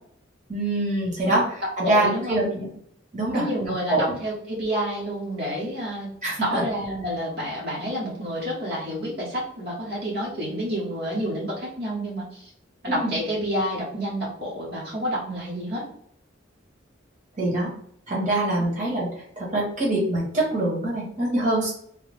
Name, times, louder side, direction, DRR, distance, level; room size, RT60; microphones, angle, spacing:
voice 1, 0.5-2.7 3.1-3.5 3.9-4.2 6.2-6.6 12.8-13.1 17.4-17.7 18.1-19.1 19.4-21.7, right 1 dB, 40° right, -5 dB, 1.3 m, -24 dB
voice 2, 1.8-2.4 3.3-6.1 6.4-12.5 12.8-15.8 18.6-18.7, equal, 60° right, -6 dB, 1.2 m, -29 dB
3.3 x 2.3 x 3.3 m, 0.64 s
head